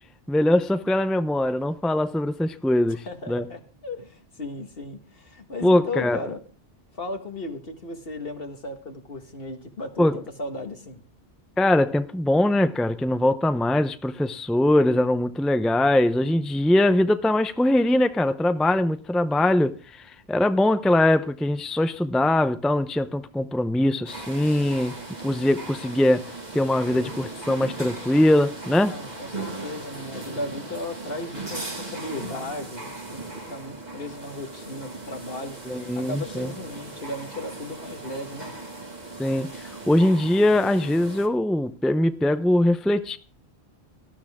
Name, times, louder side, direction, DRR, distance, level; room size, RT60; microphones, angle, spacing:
voice 1, 0.3-3.5 5.6-6.2 10.0-10.2 11.6-25.0 25.2-29.0 35.7-36.5 39.2-43.2, left 1 dB, ahead, 0.5 m, -22 dB
voice 2, 2.9-6.4 7.0-11.0 28.9-35.6 35.9-38.5, left 2 dB, 60° left, 1.9 m, -36 dB
sound 1, 24.1-41.3, right 2 dB, 40° right, 2.2 m, -38 dB
18.0 x 13.0 x 3.6 m
omnidirectional pair, 1.1 m